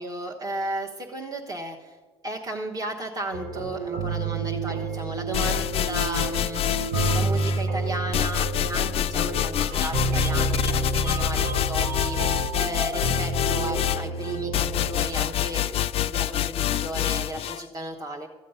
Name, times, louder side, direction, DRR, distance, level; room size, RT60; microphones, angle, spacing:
voice 1, 0.0-1.9 2.2-18.3, right 1 dB, 30° right, -1 dB, 1.1 m, -34 dB
sound 1, 3.3-15.0, right 3 dB, 70° right, 1.3 m, -29 dB
sound 2, 5.3-7.6 8.1-17.6, left 12 dB, 45° left, 0.4 m, -26 dB
sound 3, 9.7-13.2 13.4-13.5 13.8-13.9, right 3 dB, 55° right, 1.7 m, -41 dB
13.5 x 7.4 x 5.6 m, 1.3 s
supercardioid pair, 85°, 14 cm